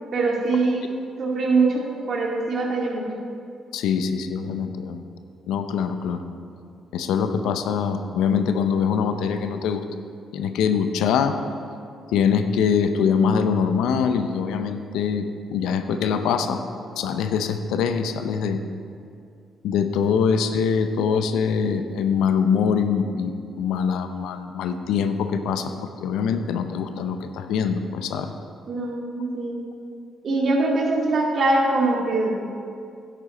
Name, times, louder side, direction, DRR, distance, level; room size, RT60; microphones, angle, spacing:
voice 1, 0.1-0.9 1.2-3.1 28.7-29.6 30.2-32.5, right 3 dB, 55° right, -1 dB, 2.1 m, -23 dB
voice 2, 3.7-5.1 5.5-6.2 6.9-9.9 10.3-11.5 12.1-16.6 17.0-18.6 19.6-28.3, left 6 dB, 90° left, 8 dB, 0.6 m, -23 dB
11.0 x 8.7 x 4.3 m, 2.4 s
cardioid pair, 90°, 0 cm